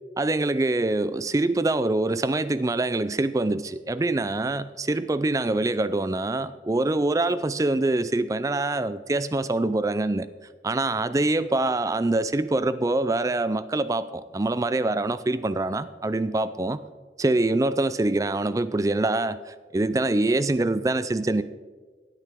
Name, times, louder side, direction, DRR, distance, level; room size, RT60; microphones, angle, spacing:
voice 1, 0.2-10.3 10.6-16.8 17.2-21.4, right 2 dB, 20° right, 14 dB, 0.3 m, -25 dB
15.5 x 9.0 x 3.6 m, 1.4 s
head